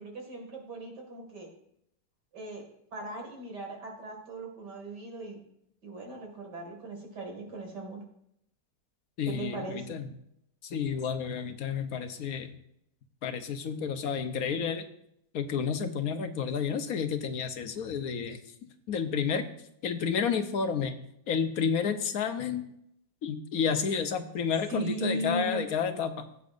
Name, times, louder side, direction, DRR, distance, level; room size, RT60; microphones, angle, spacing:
voice 1, 0.0-1.5 2.3-2.6 2.9-5.4 5.8-8.0 9.2-10.0 24.7-25.6, right 2 dB, 90° right, 1 dB, 2.9 m, -38 dB
voice 2, 9.2-10.1 10.6-12.5 13.2-14.9 15.3-18.4 18.9-19.4 19.8-20.9 21.3-22.6 23.2-26.3, left 6 dB, 65° left, 8 dB, 1.3 m, -30 dB
15.5 x 8.3 x 2.6 m, 0.74 s
omnidirectional pair, 1.8 m